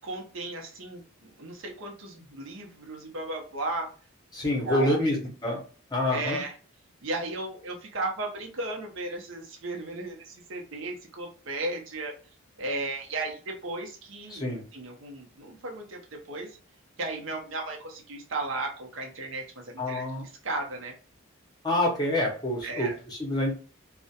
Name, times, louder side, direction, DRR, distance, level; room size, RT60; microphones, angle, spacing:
voice 1, 0.0-3.9 4.4-5.2 6.1-6.5 7.0-12.1 12.6-14.5 14.7-16.6 17.0-20.1 20.4-21.0 22.6-23.0, right 2 dB, 60° right, 1 dB, 0.6 m, -35 dB
voice 2, 4.3-5.2 5.4-5.6 5.9-6.4 14.3-14.6 19.8-20.2 21.6-23.5, left 1 dB, 20° left, -2 dB, 0.7 m, -27 dB
2.3 x 2.1 x 2.7 m, 0.38 s
head